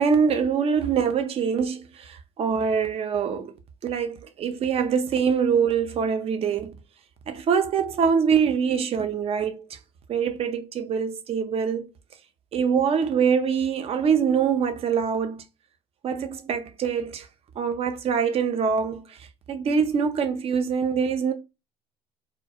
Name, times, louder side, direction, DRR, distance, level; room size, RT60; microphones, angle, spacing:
voice 1, 0.0-3.5 3.8-6.7 7.3-9.8 10.1-11.9 12.5-15.4 16.0-17.3 17.6-19.2 19.5-21.3, right 6 dB, 40° right, 0.5 m, -24 dB
2.3 x 2.1 x 2.7 m
supercardioid pair, 95°, 15 cm